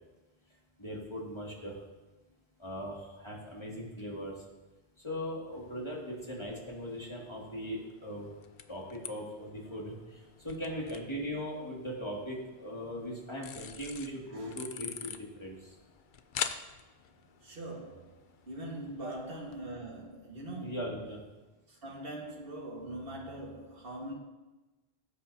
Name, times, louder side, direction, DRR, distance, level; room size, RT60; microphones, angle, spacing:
voice 1, 0.8-1.7 2.6-4.3 5.0-8.3 8.7-10.0 10.4-15.6 19.0-19.2 20.6-21.2, equal, 25° left, -4 dB, 2.5 m, -39 dB
sound 1, 5.5-19.6, left 7 dB, 55° left, 0.7 m, -46 dB
voice 2, 17.4-18.1 18.5-20.8 21.7-24.1, right 1 dB, 65° right, -3 dB, 2.0 m, -42 dB
18.0 x 8.2 x 2.9 m, 1.1 s
omnidirectional pair, 1.1 m